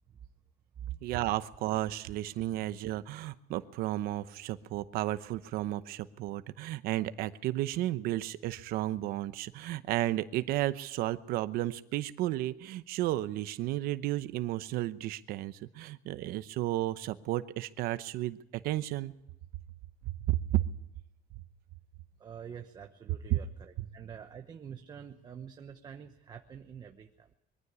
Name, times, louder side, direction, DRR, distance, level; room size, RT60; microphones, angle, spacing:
voice 1, 1.0-18.4 18.6-19.1 20.0-20.7 23.3-23.4, right 15 dB, 85° right, 13 dB, 0.9 m, -33 dB
voice 2, 22.2-27.3, right 8 dB, 25° right, 5 dB, 1.0 m, -46 dB
22.5 x 14.5 x 8.2 m, 0.83 s
cardioid pair, 175°, 15 cm